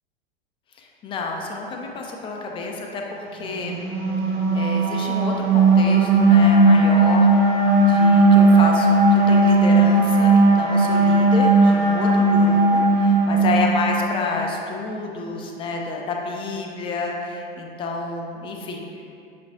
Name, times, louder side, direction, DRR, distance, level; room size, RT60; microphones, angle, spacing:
voice 1, 0.8-3.7 4.5-7.6 7.9-19.0, left 3 dB, 20° left, 1 dB, 0.3 m, -29 dB
sound 1, 3.6-14.1, right 2 dB, 5° right, 1.2 m, -16 dB
5.6 x 3.1 x 2.7 m, 2.5 s
figure-of-eight pair, 85°, 30 cm